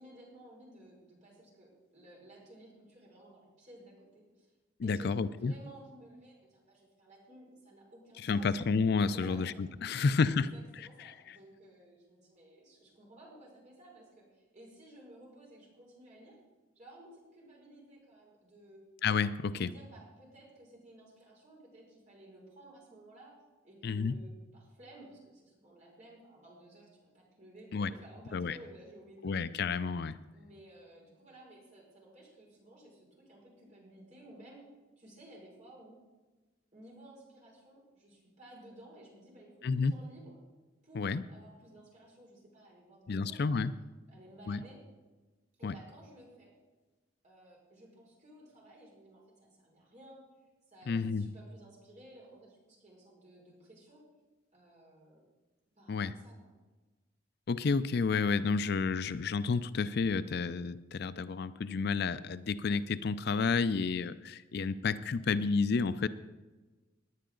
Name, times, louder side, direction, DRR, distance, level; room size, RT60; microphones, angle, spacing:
voice 1, 0.0-4.5 4.8-8.6 9.1-9.5 10.0-16.4 16.8-18.8 19.4-23.4 23.6-29.4 30.3-34.6 35.0-36.0 36.7-40.4 40.8-43.6 44.1-44.8 45.6-46.5 47.2-50.2 50.7-54.0 54.5-55.2 55.8-56.5, right 1 dB, 40° right, -4 dB, 5.3 m, -55 dB
voice 2, 4.8-5.5 8.2-10.5 11.0-11.4 19.0-19.7 23.8-24.2 27.7-27.9 28.3-28.6 29.2-30.2 39.6-39.9 40.9-41.2 43.1-43.7 44.5-44.6 45.6-45.7 50.9-51.3 55.9-56.1 57.5-66.1, left 4 dB, 55° left, 14 dB, 0.4 m, -30 dB
19.0 x 10.0 x 3.8 m, 1.2 s
head